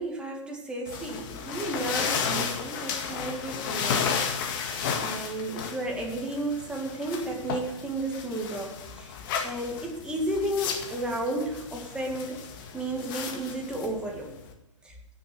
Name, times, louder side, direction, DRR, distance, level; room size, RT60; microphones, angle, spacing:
voice 1, 0.0-4.2 5.0-9.1 9.4-12.4 12.7-14.3, right 1 dB, 5° right, -1 dB, 2.4 m, -32 dB
sound 1, 0.9-14.5, left 6 dB, 45° left, 2.0 m, -33 dB
15.0 x 7.1 x 6.3 m, 0.89 s
hypercardioid pair, 125°, 16 cm